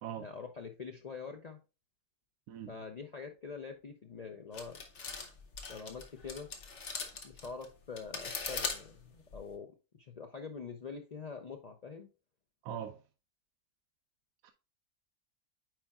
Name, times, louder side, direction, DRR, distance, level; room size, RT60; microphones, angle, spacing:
voice 1, 0.2-1.6 2.7-4.8 5.7-6.5 7.2-9.7 10.0-12.1, left 5 dB, 70° left, 0.3 m, -45 dB
voice 2, 2.5-2.8 12.6-13.0 14.4-14.5, right 9 dB, 80° right, 1.1 m, -41 dB
sound 1, 4.5-9.5, left 4 dB, 55° left, 1.2 m, -40 dB
9.3 x 4.4 x 2.4 m
omnidirectional pair, 1.5 m